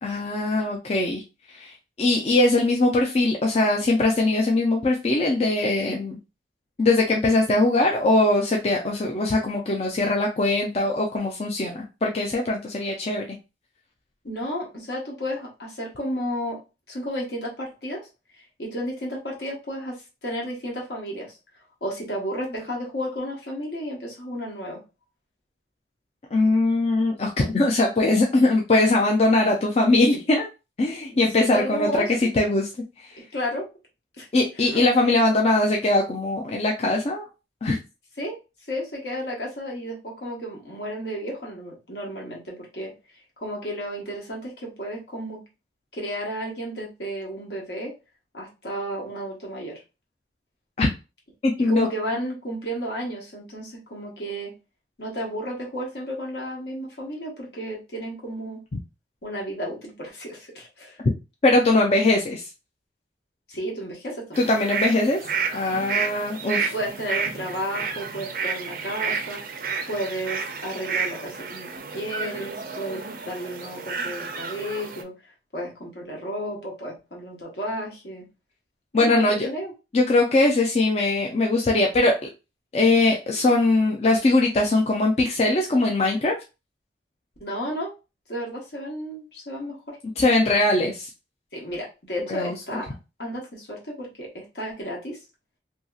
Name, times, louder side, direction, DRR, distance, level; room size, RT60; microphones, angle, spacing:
voice 1, 0.0-1.2 1.5-6.2 6.8-13.4 26.3-30.5 30.8-32.7 33.0-33.2 34.3-37.2 37.6-37.8 50.8-50.9 51.4-51.9 61.4-62.5 64.4-65.2 65.5-66.7 78.9-79.5 79.9-82.2 82.7-86.4 90.2-91.1 92.3-92.6, left 2 dB, 35° left, 0 dB, 0.4 m, -21 dB
voice 2, 14.2-16.6 16.9-18.1 18.4-21.3 21.8-24.8 31.1-32.1 33.3-33.6 34.2-34.3 34.7-34.8 38.2-38.3 38.7-42.9 43.4-45.4 45.9-47.9 48.3-49.8 51.6-54.5 55.0-58.6 59.2-61.0 63.5-64.5 66.7-69.4 69.9-75.1 75.5-78.2 78.9-79.7 87.4-87.9 88.3-90.0 91.5-92.9 93.2-95.2, equal, 70° left, -2 dB, 1.1 m, -32 dB
sound 1, 64.3-75.0, right 5 dB, 50° right, 0.4 m, -31 dB
2.8 x 2.7 x 2.3 m, 0.29 s
head